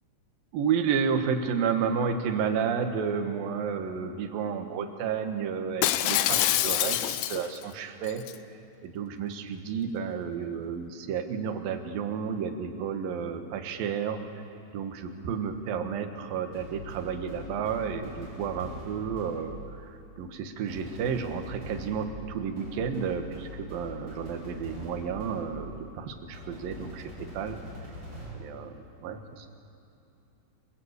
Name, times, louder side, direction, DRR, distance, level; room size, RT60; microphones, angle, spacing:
voice 1, 0.5-8.2 8.8-14.2 14.7-19.6 19.9-27.6 28.3-29.5, right 6 dB, 65° right, 5 dB, 2.9 m, -31 dB
Shatter, 5.8-7.6 8.1-8.3, left 14 dB, 90° left, 2.1 m, -25 dB
sound 1, 16.5-19.8 20.7-25.8 26.3-28.5, left 1 dB, 15° right, 6.1 m, -43 dB
28.5 x 20.5 x 8.3 m, 2.7 s
omnidirectional pair, 5.1 m